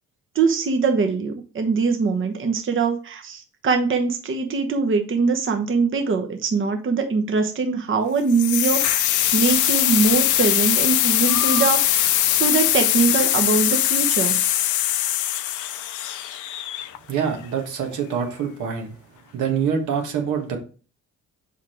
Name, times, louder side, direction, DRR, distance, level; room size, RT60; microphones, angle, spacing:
voice 1, 0.3-9.1 9.3-14.4, right 4 dB, 40° right, 4 dB, 1.0 m, -22 dB
sound 1, 8.3-17.2, left 12 dB, 75° left, 0.7 m, -21 dB
voice 2, 17.1-18.9 19.3-20.6, right 7 dB, 80° right, 4 dB, 1.7 m, -25 dB
5.7 x 4.9 x 4.5 m, 0.36 s
cardioid pair, 90°, 30 cm